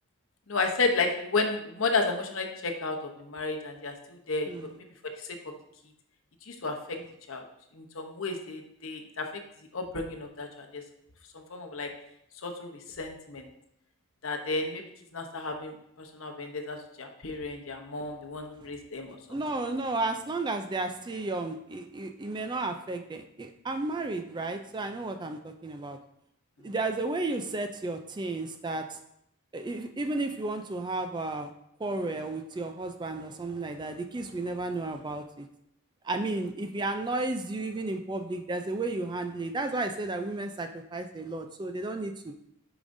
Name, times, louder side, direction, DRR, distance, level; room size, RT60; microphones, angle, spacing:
voice 1, 0.5-4.5 5.2-5.4 6.5-7.0 7.3-7.4 7.7-9.3 9.7-10.8 11.3-11.9 12.4-13.5 14.2-14.8 15.1-19.4, left 3 dB, 65° left, 4 dB, 0.8 m, -32 dB
voice 2, 19.3-26.0 26.6-29.0 29.5-31.5 31.8-35.5 36.0-42.3, right 2 dB, 20° right, 7 dB, 0.3 m, -33 dB
8.6 x 4.9 x 2.6 m, 0.77 s
head